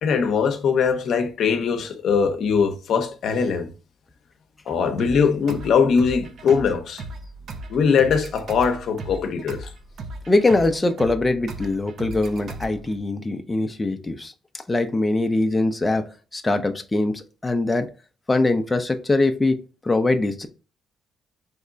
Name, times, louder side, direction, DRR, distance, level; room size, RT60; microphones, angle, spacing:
voice 1, 0.0-3.7 4.7-7.0 7.7-9.7, left 6 dB, 70° left, 0.7 m, -21 dB
sound 1, 5.0-13.0, right 2 dB, 65° right, 0.7 m, -37 dB
voice 2, 10.3-14.3 14.7-16.0 16.3-17.9 18.3-19.6 19.8-20.5, left 2 dB, 20° left, 0.5 m, -22 dB
3.5 x 3.2 x 3.8 m
cardioid pair, 90°, 0 cm